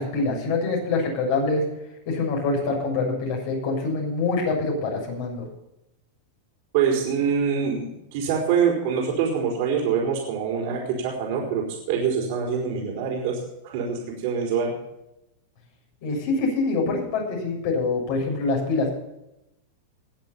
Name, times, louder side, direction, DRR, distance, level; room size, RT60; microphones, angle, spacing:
voice 1, 0.0-1.6 2.1-5.4 16.0-18.9, left 3 dB, 60° left, -1 dB, 7.1 m, -25 dB
voice 2, 6.7-14.7, right 6 dB, 60° right, -1 dB, 4.8 m, -25 dB
21.0 x 7.9 x 5.7 m, 0.87 s
hypercardioid pair, 105°, 0 cm